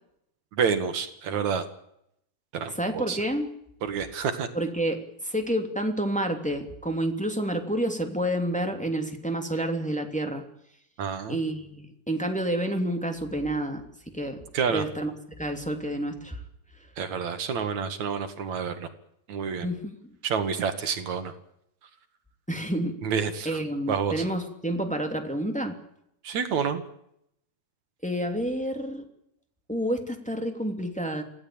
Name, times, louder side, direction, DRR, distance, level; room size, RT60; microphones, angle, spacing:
voice 1, 0.5-1.6 2.5-3.2 3.8-4.5 11.0-11.4 14.5-14.8 17.0-18.9 19.3-19.7 20.2-21.3 23.0-23.6 23.9-24.2 26.2-26.8, right 6 dB, 60° right, 9 dB, 3.1 m, -28 dB
voice 2, 2.7-3.5 4.5-10.4 11.3-13.8 14.1-14.4 14.7-16.4 19.6-19.9 22.5-23.0 23.4-25.7 28.0-29.0 29.7-31.2, right 1 dB, ahead, 4 dB, 2.5 m, -29 dB
26.5 x 16.5 x 8.8 m, 0.76 s
omnidirectional pair, 3.7 m